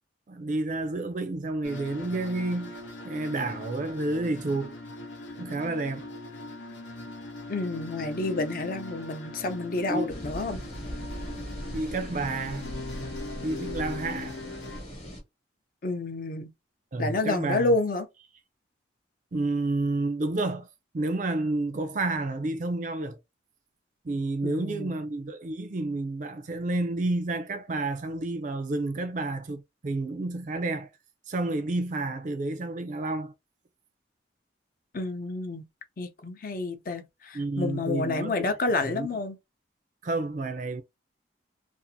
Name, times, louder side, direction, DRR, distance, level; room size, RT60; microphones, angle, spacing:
voice 1, 0.3-2.8 3.0-4.8 5.3-6.1 9.9-10.0 11.7-12.7 13.4-14.4 16.9-17.7 19.3-20.7 20.9-23.2 24.0-30.9 31.3-33.3 37.3-38.5 38.8-39.1 40.0-40.8, right 2 dB, 40° right, 0.4 m, -30 dB
sound 1, 1.6-14.8, left 2 dB, 85° left, 0.9 m, -40 dB
voice 2, 7.5-10.6 15.8-16.5 17.0-18.1 24.4-24.9 34.9-35.7 36.0-39.4, left 2 dB, 45° left, 0.5 m, -29 dB
sound 2, 10.1-15.2, equal, 30° left, 1.0 m, -39 dB
2.6 x 2.4 x 2.7 m
head